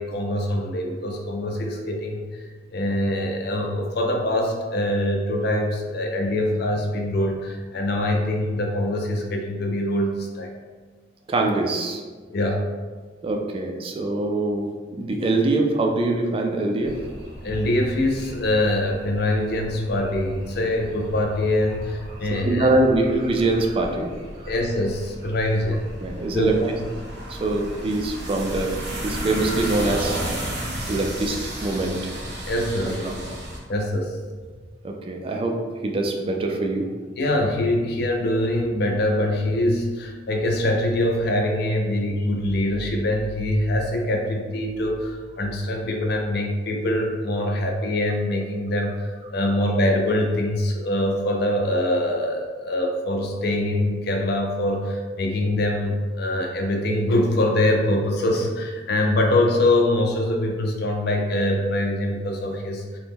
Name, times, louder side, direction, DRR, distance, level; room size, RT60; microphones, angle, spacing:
voice 1, 0.0-10.5 12.3-12.7 17.4-22.7 24.5-25.8 26.3-26.5 32.5-33.1 33.7-34.1 37.2-63.0, left 1 dB, 60° left, 2 dB, 0.5 m, -24 dB
voice 2, 11.3-12.0 13.2-17.0 22.1-24.1 24.4-24.5 26.0-26.6 27.3-28.8 29.0-30.2 30.9-32.0 32.8-33.2 34.8-36.9, right 2 dB, 30° right, 3 dB, 0.3 m, -24 dB
sound 1, 16.8-33.6, right 1 dB, 70° right, 0.7 m, -34 dB
2.9 x 2.1 x 3.4 m, 1.4 s
head